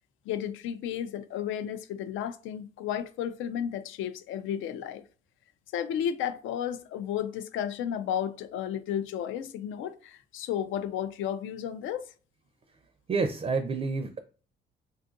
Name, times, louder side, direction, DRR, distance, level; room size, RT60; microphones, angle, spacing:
voice 1, 0.3-5.0 5.7-12.1, left 9 dB, 80° left, 0.4 m, -33 dB
voice 2, 13.1-14.2, right 4 dB, 30° right, 0.4 m, -28 dB
2.6 x 2.4 x 3.7 m
cardioid pair, 90°, 20 cm